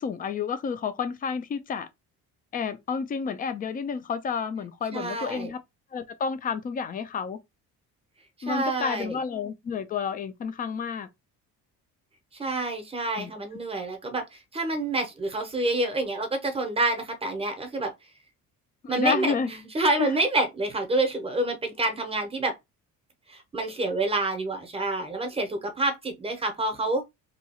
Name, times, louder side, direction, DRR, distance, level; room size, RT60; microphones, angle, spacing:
voice 1, 0.0-1.9 2.5-5.6 5.9-7.4 8.4-11.1 13.2-13.3 18.8-19.5 20.0-20.1, left 6 dB, 25° left, 0.4 m, -30 dB
voice 2, 4.9-5.5 8.4-9.2 12.3-17.9 18.9-22.5 23.3-27.0, right 2 dB, 15° right, 0.7 m, -28 dB
2.8 x 2.3 x 4.1 m
cardioid pair, 170°, 34 cm